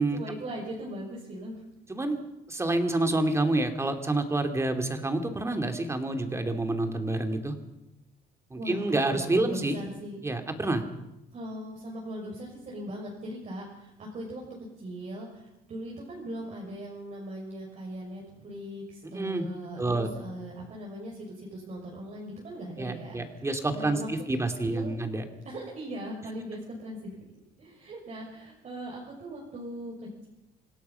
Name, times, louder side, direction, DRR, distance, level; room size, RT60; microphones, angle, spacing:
voice 1, 0.1-1.6 8.5-10.2 11.3-14.4 14.8-24.1 24.6-24.9 25.4-27.2 27.6-30.3, right 1 dB, 45° right, -2 dB, 6.1 m, -39 dB
voice 2, 1.9-2.2 2.5-7.5 8.5-9.8 10.2-10.8 19.1-19.5 19.8-20.1 22.8-25.2, right 2 dB, 15° right, 6 dB, 2.8 m, -28 dB
27.0 x 17.0 x 5.8 m, 0.92 s
cardioid pair, 110°, 17 cm